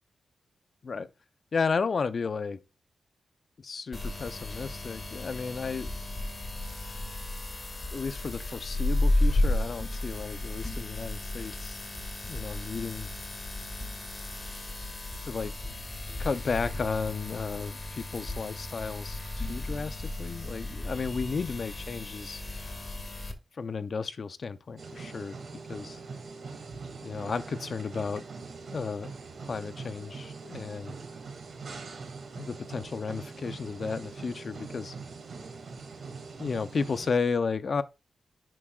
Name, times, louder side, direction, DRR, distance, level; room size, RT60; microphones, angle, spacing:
voice 1, 1.5-2.6 3.6-5.9 7.9-11.8 12.2-13.1 15.2-15.5 16.2-22.4 23.6-25.4 25.7-26.0 27.0-28.2 28.7-29.1 29.5-31.0 32.4-35.0 36.4-37.8, left 5 dB, 60° left, 0.7 m, -33 dB
sound 1, 3.9-23.3, left 1 dB, 40° left, 2.1 m, -33 dB
sound 2, 24.8-37.1, right 4 dB, 65° right, 2.4 m, -42 dB
10.5 x 6.1 x 2.4 m
supercardioid pair, 40°, 0 cm